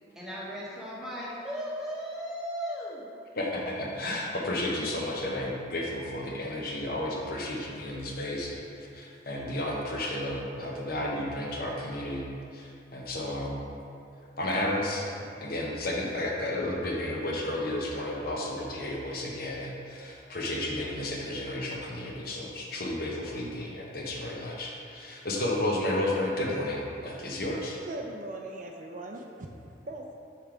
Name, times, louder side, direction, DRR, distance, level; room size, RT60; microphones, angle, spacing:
voice 1, 0.1-3.1, equal, 5° right, -7 dB, 1.0 m, -36 dB
voice 2, 3.4-8.6 8.9-13.7 14.4-15.1 15.4-27.8, left 1 dB, 50° left, -2 dB, 0.8 m, -32 dB
voice 3, 27.8-30.2, right 1 dB, 40° right, 2 dB, 0.5 m, -40 dB
5.5 x 4.5 x 4.9 m, 2.5 s
head